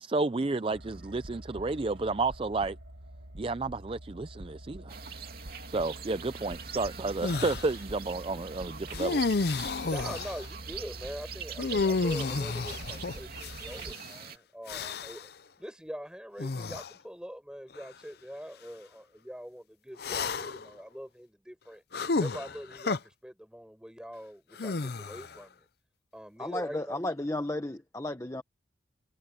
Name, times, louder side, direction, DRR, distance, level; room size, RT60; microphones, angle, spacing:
voice 1, 0.0-2.8 3.4-5.0 5.7-9.2, right 3 dB, 30° right, 0.4 m, -31 dB
sound 1, 0.7-13.9, right 1 dB, 70° right, 1.7 m, -46 dB
sound 2, 4.9-14.4, right 7 dB, 55° right, 3.1 m, -43 dB
sound 3, 7.2-7.7 8.9-10.4 11.6-13.9 14.7-15.3 16.4-16.9 17.7-17.9 20.0-20.7 21.9-23.0 24.6-25.4, left 3 dB, 55° left, 0.6 m, -31 dB
voice 2, 9.8-15.3 15.6-21.8 22.2-25.6 26.1-27.0, equal, 5° right, 6.0 m, -43 dB
voice 3, 26.4-28.4, left 1 dB, 15° left, 0.8 m, -33 dB
head